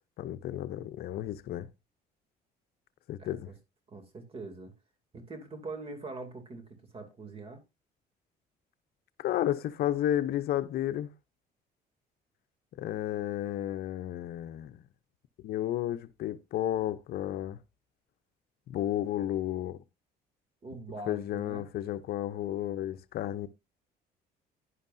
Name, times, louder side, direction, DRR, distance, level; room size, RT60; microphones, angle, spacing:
voice 1, 0.2-1.7 3.1-3.5 9.2-11.1 12.8-14.8 15.4-17.6 18.7-19.8 21.1-23.5, left 12 dB, 70° left, 0.6 m, -32 dB
voice 2, 3.2-3.6 3.9-4.7 5.1-7.6 20.6-21.7, right 3 dB, 35° right, 2.7 m, -43 dB
11.0 x 9.9 x 2.6 m
cardioid pair, 110°, 17 cm